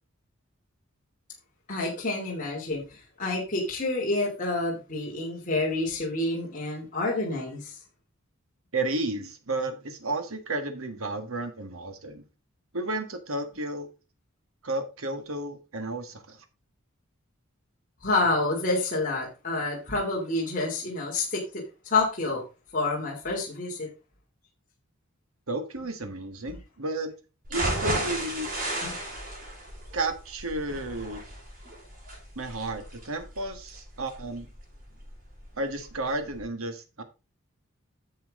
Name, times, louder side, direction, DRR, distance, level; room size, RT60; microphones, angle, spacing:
voice 1, 1.7-7.8 18.0-22.4 22.7-23.9 26.5-26.6 28.8-28.9, left 2 dB, 40° left, 3.0 m, -28 dB
voice 2, 8.7-12.2 12.7-13.9 14.6-16.4 25.5-27.1 27.5-28.5 29.9-31.2 32.3-34.5 35.6-37.0, right 2 dB, 80° right, 1.6 m, -32 dB
sound 1, 27.4-35.4 35.8-35.9 36.3-36.4, right 1 dB, 40° right, 5.3 m, -34 dB
10.0 x 7.2 x 3.7 m
head